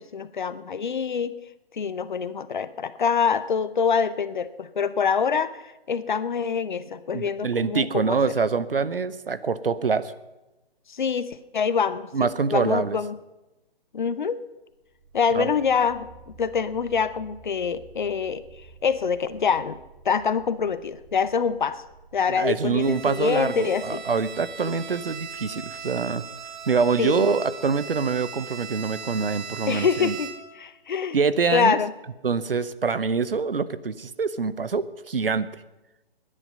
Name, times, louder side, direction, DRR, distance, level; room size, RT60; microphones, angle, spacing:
voice 1, 0.0-1.3 1.7-8.2 10.9-12.1 12.5-13.2 13.9-14.4 15.1-18.4 18.8-19.8 20.0-21.8 22.1-24.0 24.6-24.8 27.0-27.2 29.7-31.2 31.5-31.9, left 6 dB, 50° left, 14 dB, 0.8 m, -25 dB
voice 2, 7.1-10.1 12.1-13.0 15.3-15.5 22.3-26.2 26.7-30.2 31.1-31.8 32.2-35.6, right 5 dB, 65° right, 15 dB, 0.8 m, -25 dB
sound 1, 14.7-28.2, right 4 dB, 25° right, 2.7 m, -53 dB
Bowed string instrument, 22.8-30.6, right 6 dB, 50° right, 1.7 m, -39 dB
20.0 x 10.0 x 5.4 m, 1.0 s
figure-of-eight pair, 135°, 30 cm